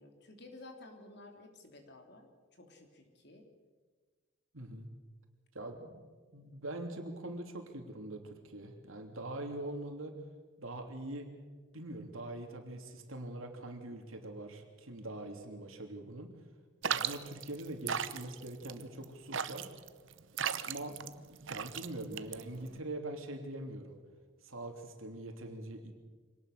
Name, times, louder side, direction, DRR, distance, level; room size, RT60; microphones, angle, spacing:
voice 1, 0.0-3.5, left 2 dB, 55° left, 4 dB, 3.4 m, -54 dB
voice 2, 4.5-4.9 5.5-6.0 6.3-10.2 10.6-11.3 11.7-16.3 16.8-19.7 20.4-24.0 24.4-25.9, right 1 dB, 90° right, 4 dB, 3.1 m, -43 dB
sound 1, 16.8-22.8, right 8 dB, 70° right, 0.9 m, -37 dB
25.0 x 18.5 x 6.8 m, 1.4 s
head